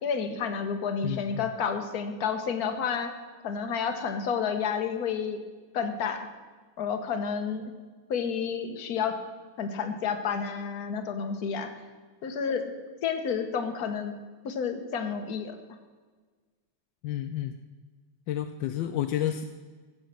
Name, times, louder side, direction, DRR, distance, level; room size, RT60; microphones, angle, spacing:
voice 1, 0.0-3.1 3.4-5.4 5.7-6.3 6.8-7.7 8.1-9.2 9.6-11.7 12.2-12.6 13.0-14.2 14.4-15.6, left 6 dB, 55° left, 7 dB, 1.5 m, -30 dB
voice 2, 1.0-1.5 17.0-17.6 18.3-19.4, left 11 dB, 80° left, 8 dB, 1.3 m, -30 dB
15.5 x 6.4 x 7.4 m, 1.4 s
omnidirectional pair, 2.0 m